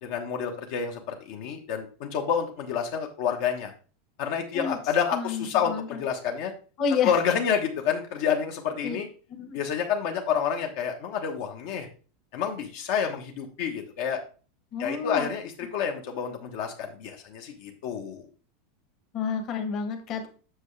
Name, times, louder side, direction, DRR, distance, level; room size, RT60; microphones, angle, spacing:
voice 1, 0.0-3.7 4.2-6.5 7.0-9.1 9.5-11.9 12.3-14.2 14.8-18.3, left 7 dB, 55° left, 3 dB, 1.1 m, -29 dB
voice 2, 5.1-6.0 6.8-7.1 8.8-9.0 9.3-9.6 14.7-15.3 19.1-20.3, left 6 dB, 35° left, 4 dB, 1.3 m, -29 dB
7.9 x 6.7 x 3.2 m, 0.37 s
supercardioid pair, 165°, 0 cm